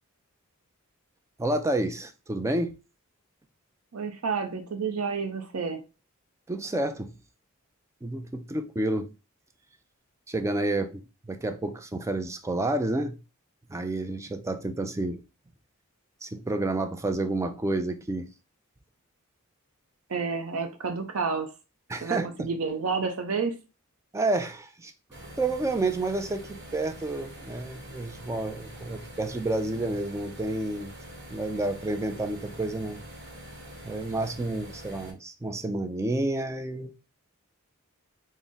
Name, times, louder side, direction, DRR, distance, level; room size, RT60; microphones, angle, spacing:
voice 1, 1.4-2.7 6.5-7.1 8.0-9.1 10.3-13.2 13.7-15.2 16.2-18.3 21.9-22.5 24.1-24.9 25.4-30.9 31.3-33.0 33.8-36.9, right 2 dB, 15° right, 0.3 m, -30 dB
voice 2, 3.9-5.8 20.1-21.5 22.0-23.6, right 5 dB, 75° right, 0.6 m, -30 dB
sound 1, 25.1-35.1, equal, 55° right, 1.0 m, -45 dB
4.0 x 2.1 x 3.5 m
head